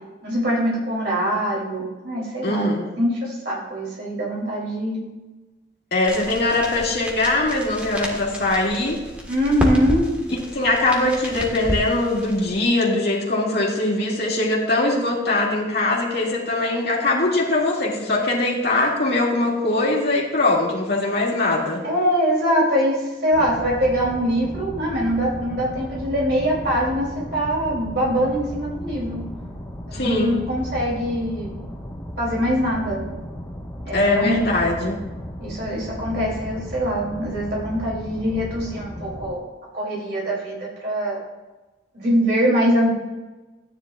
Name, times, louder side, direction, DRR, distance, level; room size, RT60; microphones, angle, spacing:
voice 1, 0.2-2.7 3.0-5.0 9.3-10.1 21.8-29.2 29.9-31.5 32.2-33.0 33.8-34.5 35.4-39.4 39.7-41.2 41.9-42.9, equal, 55° right, -4 dB, 2.9 m, -23 dB
voice 2, 2.4-2.9 5.9-9.0 10.5-21.8 29.9-30.4 33.9-35.0, left 2 dB, 55° left, -3 dB, 2.2 m, -21 dB
sound 1, 6.1-12.6, equal, 5° right, 1.4 m, -30 dB
sound 2, 23.3-39.3, equal, 10° left, 1.2 m, -35 dB
13.5 x 9.8 x 2.4 m, 1.2 s
head